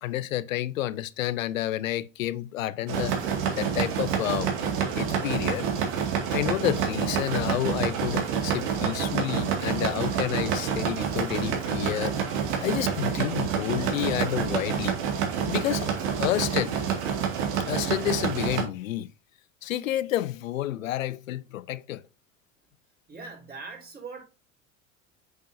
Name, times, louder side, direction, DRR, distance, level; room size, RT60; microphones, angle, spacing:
voice 1, 0.0-3.2 3.6-4.5 4.9-5.7 6.3-12.2 12.6-15.0 15.5-15.9 16.2-16.7 17.6-19.1 19.6-22.0, left 13 dB, 90° left, 0.6 m, -30 dB
sound 1, 2.9-18.6, right 7 dB, 65° right, 2.2 m, -28 dB
voice 2, 23.1-24.3, right 4 dB, 25° right, 4.1 m, -41 dB
7.3 x 6.1 x 2.7 m
hypercardioid pair, 80°, 38 cm